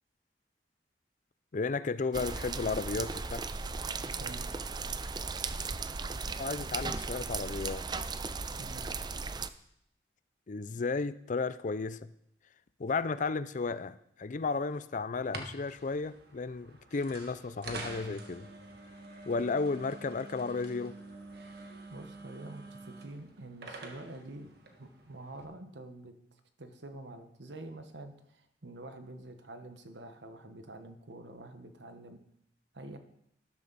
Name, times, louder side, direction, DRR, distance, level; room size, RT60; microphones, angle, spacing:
voice 1, 1.5-3.4 6.4-8.1 10.5-12.1 12.8-18.5 19.2-21.0, left 4 dB, 45° left, 0.5 m, -34 dB
sound 1, 2.1-9.5, right 4 dB, 25° right, 0.5 m, -36 dB
voice 2, 8.6-9.0 21.9-24.5 24.8-26.1 26.6-32.2 32.7-33.0, right 2 dB, 85° right, 1.3 m, -47 dB
sound 2, 15.1-25.4, right 2 dB, 65° right, 1.6 m, -47 dB
12.5 x 11.5 x 4.1 m
head